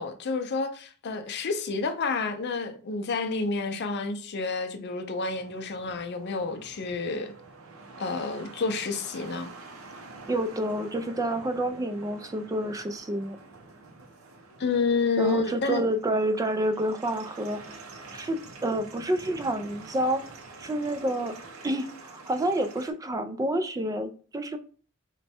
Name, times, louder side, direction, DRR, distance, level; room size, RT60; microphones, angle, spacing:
voice 1, 0.0-7.3 8.0-9.5 14.6-15.8, left 4 dB, 55° left, 0.5 m, -29 dB
sound 1, 5.3-22.9, right 3 dB, 85° right, 0.7 m, -47 dB
voice 2, 10.3-13.4 15.2-17.8 18.1-20.2 20.6-21.4 21.6-24.6, right 1 dB, 15° right, 0.3 m, -29 dB
3.2 x 2.2 x 4.2 m
head